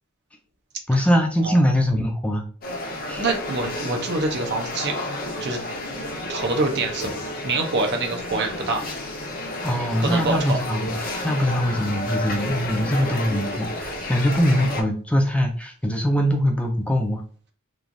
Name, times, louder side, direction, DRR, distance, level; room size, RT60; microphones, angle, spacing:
voice 1, 0.9-2.4 3.1-3.3 9.6-17.2, equal, 5° left, 2 dB, 0.4 m, -22 dB
sound 1, 2.6-14.8, left 1 dB, 45° left, 0.6 m, -31 dB
voice 2, 3.2-4.9 5.4-5.6 6.3-8.8 10.0-10.6, right 3 dB, 50° right, 3 dB, 0.6 m, -25 dB
3.0 x 2.3 x 2.5 m, 0.40 s
head